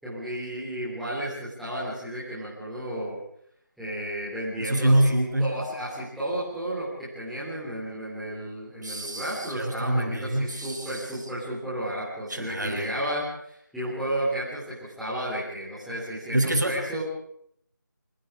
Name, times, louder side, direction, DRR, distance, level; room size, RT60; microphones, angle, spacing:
voice 1, 0.0-3.2 3.8-17.0, right 1 dB, ahead, -12 dB, 3.8 m, -33 dB
voice 2, 4.6-5.5 8.8-11.0 12.3-12.9 16.3-16.8, right 1 dB, 65° right, 3 dB, 6.5 m, -25 dB
26.0 x 23.5 x 5.0 m, 0.69 s
figure-of-eight pair, 165°, 11 cm